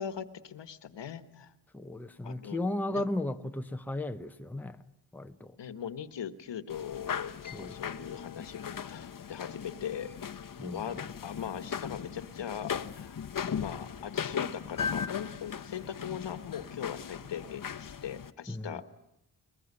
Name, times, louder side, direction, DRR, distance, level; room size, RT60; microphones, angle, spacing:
voice 1, 0.0-1.5 2.2-3.0 5.6-7.3 7.6-10.1 10.6-13.1 13.5-18.8, left 8 dB, 75° left, 1.5 m, -40 dB
voice 2, 1.7-4.8 5.1-5.6 7.5-7.8 10.6-11.0 18.5-18.8, left 1 dB, 5° left, 0.9 m, -35 dB
sound 1, 6.7-18.3, left 7 dB, 50° left, 1.0 m, -38 dB
22.0 x 21.0 x 9.7 m
wide cardioid pair, 115°, 43 cm